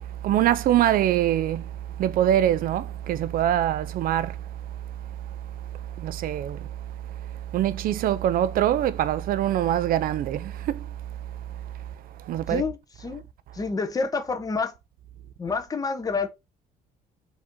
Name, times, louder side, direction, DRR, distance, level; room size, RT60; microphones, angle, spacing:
voice 1, 0.2-1.7 2.0-4.4 6.0-6.7 7.5-10.9 12.2-12.6, right 12 dB, 60° right, 0.4 m, -23 dB
voice 2, 12.5-13.2 13.5-14.7 15.4-16.3, left 4 dB, 20° left, 0.8 m, -28 dB
5.0 x 2.7 x 3.7 m
cardioid pair, 110°, 17 cm